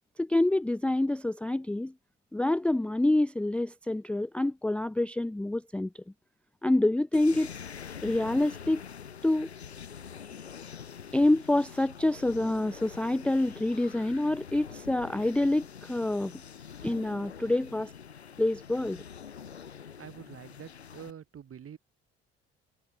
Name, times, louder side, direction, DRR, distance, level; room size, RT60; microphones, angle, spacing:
voice 1, 0.2-1.9 2.3-5.9 6.6-7.5 8.0-8.8 9.2-9.5 11.1-16.3 16.8-17.9 18.4-19.0, left 1 dB, 5° left, 0.5 m, -27 dB
sound 1, 7.1-21.1, left 7 dB, 90° left, 3.0 m, -45 dB
voice 2, 20.0-21.8, right 8 dB, 45° right, 6.2 m, -46 dB
figure-of-eight pair, 50°, 31 cm